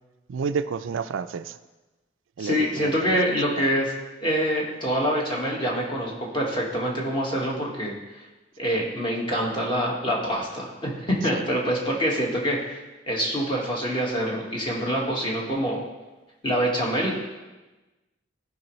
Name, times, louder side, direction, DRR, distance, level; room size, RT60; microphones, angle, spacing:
voice 1, 0.3-1.6 2.4-3.2 3.6-3.7 11.3-11.4, right 5 dB, 85° right, 12 dB, 0.4 m, -30 dB
voice 2, 2.4-3.9 4.2-7.9 8.6-12.8 13.1-15.8 16.4-17.1, equal, 25° left, -3 dB, 1.6 m, -25 dB
15.0 x 5.2 x 3.1 m, 1.1 s
head